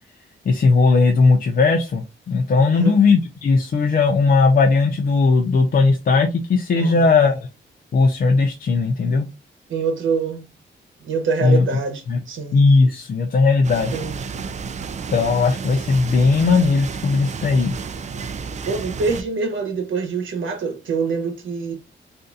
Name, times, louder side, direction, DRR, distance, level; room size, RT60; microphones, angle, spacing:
voice 1, 0.5-7.4 7.9-9.3 11.4-11.6 12.1-12.2 12.5-14.0 15.1-17.8, left 4 dB, 45° left, 0.5 m, -17 dB
voice 2, 2.6-3.0 6.8-7.1 9.7-10.4 11.0-12.6 13.9-14.5 18.7-21.7, right 5 dB, 75° right, 0.9 m, -25 dB
sound 1, 13.6-19.2, right 5 dB, 35° right, 0.4 m, -31 dB
3.8 x 2.6 x 2.3 m
wide cardioid pair, 135°, 20 cm